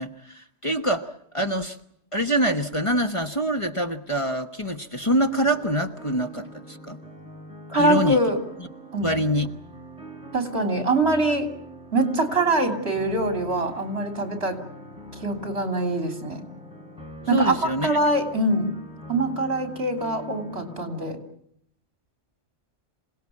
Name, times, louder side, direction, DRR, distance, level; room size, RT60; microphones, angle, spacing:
voice 1, 0.0-1.8 2.1-7.0 7.8-8.2 9.0-9.5 17.3-18.0, right 1 dB, 30° left, 6 dB, 1.3 m, -25 dB
sound 1, 5.0-21.0, equal, 5° right, 5.2 m, -43 dB
voice 2, 7.7-8.4 8.9-9.1 10.3-11.5 11.9-14.6 15.2-16.4 17.3-18.7 19.1-21.2, right 2 dB, 65° right, 6 dB, 3.6 m, -24 dB
27.0 x 18.0 x 8.5 m, 0.72 s
omnidirectional pair, 1.2 m